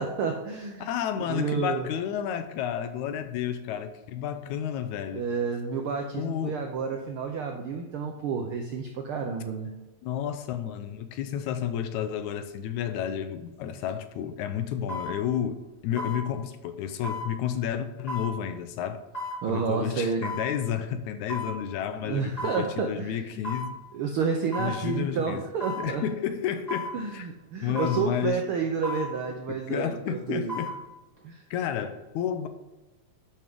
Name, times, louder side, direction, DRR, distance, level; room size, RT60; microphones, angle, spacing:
voice 1, 0.0-0.9 1.2-1.9 5.1-9.7 19.4-20.2 22.0-23.2 23.9-26.0 26.9-30.5 31.2-31.4, right 5 dB, 85° right, 1.2 m, -30 dB
voice 2, 0.8-5.3 6.1-6.7 10.0-19.0 19.5-23.8 24.6-25.4 25.8-27.3 27.6-28.4 29.5-30.8 31.5-32.5, left 9 dB, 85° left, 2.1 m, -31 dB
sound 1, 13.7-13.9 14.9-15.1 16.0-16.2 17.0-17.3 18.1-18.3 19.1-19.4 20.2-20.5 21.3-21.6 22.4-22.6 23.4-23.7 24.5-24.8 25.6-25.9 26.7-26.9 27.7-28.0 28.8-29.1 30.3-30.7 31.2-31.3, left 2 dB, 15° left, 2.7 m, -34 dB
11.0 x 5.8 x 3.6 m
omnidirectional pair, 3.3 m